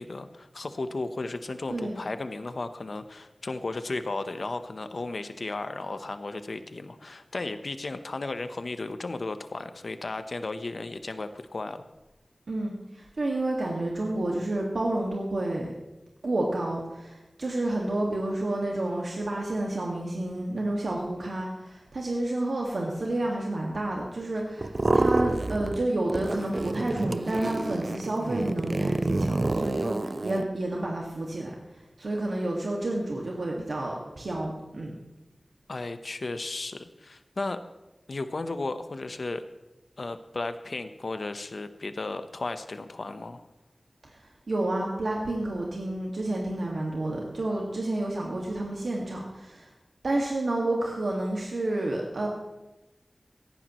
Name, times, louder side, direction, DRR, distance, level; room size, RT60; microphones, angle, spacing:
voice 1, 0.0-11.8 35.7-37.6 38.1-39.4 40.0-43.4, left 3 dB, 70° left, 9 dB, 0.9 m, -34 dB
voice 2, 12.5-15.7 16.2-31.5 32.0-34.9 44.5-49.7 50.0-52.3, right 1 dB, 90° right, -2 dB, 1.9 m, -30 dB
sound 1, 24.6-25.8 26.1-30.4, right 2 dB, 45° right, 0.5 m, -28 dB
17.5 x 14.5 x 3.1 m, 1.1 s
wide cardioid pair, 75°, 0 cm